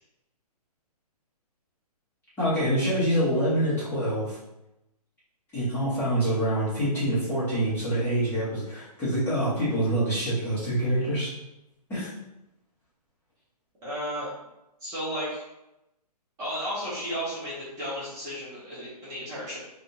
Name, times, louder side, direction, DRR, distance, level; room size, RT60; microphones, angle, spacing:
voice 1, 2.4-4.4 5.5-11.3 11.9-12.1, right 1 dB, 10° left, -12 dB, 1.1 m, -26 dB
voice 2, 13.8-14.3 14.8-15.4 16.4-19.6, equal, 15° right, -10 dB, 1.0 m, -33 dB
3.5 x 2.4 x 2.7 m, 0.90 s
hypercardioid pair, 155°, 21 cm